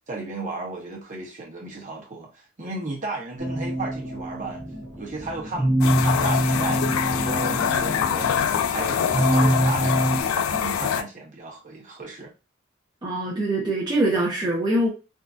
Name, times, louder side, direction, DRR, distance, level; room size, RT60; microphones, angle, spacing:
voice 1, 0.1-2.3 2.6-4.6 5.0-12.3, right 2 dB, 40° right, 1.0 m, -34 dB
sound 1, 3.4-10.2, right 1 dB, 55° right, 1.3 m, -25 dB
sound 2, 5.8-11.0, left 8 dB, 85° left, 0.3 m, -24 dB
voice 2, 13.0-14.9, right 1 dB, 20° right, 0.7 m, -23 dB
3.6 x 2.4 x 2.6 m
head